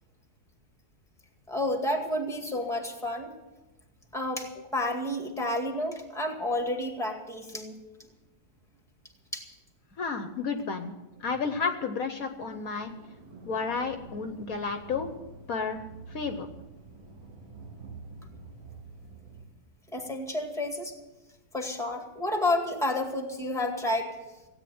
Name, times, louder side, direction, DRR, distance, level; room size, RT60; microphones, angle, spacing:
voice 1, 1.5-3.3 4.1-7.8 9.3-9.4 19.9-20.9 21.5-24.1, left 1 dB, ahead, 3 dB, 1.9 m, -30 dB
voice 2, 10.0-10.9 11.2-12.9 13.5-15.1 15.5-15.8 16.1-16.5, left 5 dB, 60° left, 7 dB, 1.3 m, -31 dB
sound 1, 12.4-19.4, right 4 dB, 85° right, 3.7 m, -48 dB
16.5 x 9.2 x 7.9 m, 1.1 s
omnidirectional pair, 1.8 m